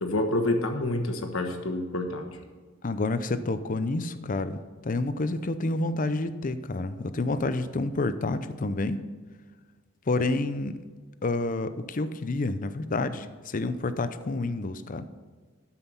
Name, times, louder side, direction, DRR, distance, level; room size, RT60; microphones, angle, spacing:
voice 1, 0.0-2.3, left 2 dB, 90° left, 4 dB, 1.3 m, -28 dB
voice 2, 2.8-9.0 10.1-10.8 11.2-15.1, left 2 dB, 40° left, 12 dB, 0.6 m, -29 dB
12.5 x 5.8 x 5.5 m, 1.4 s
head